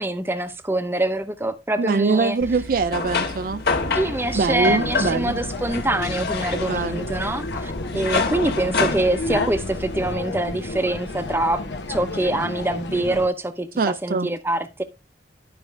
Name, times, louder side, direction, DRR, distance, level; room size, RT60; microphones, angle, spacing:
voice 1, 0.0-2.4 3.9-11.6 11.9-14.8, right 1 dB, 15° right, 0.7 m, -25 dB
voice 2, 1.8-3.6 4.3-5.4 6.7-7.0 13.8-14.3, right 4 dB, 55° right, 0.4 m, -23 dB
sound 1, 2.4-10.1, left 4 dB, 60° left, 1.4 m, -28 dB
sound 2, 3.7-13.3, left 2 dB, 85° left, 1.1 m, -32 dB
11.5 x 5.1 x 3.3 m
head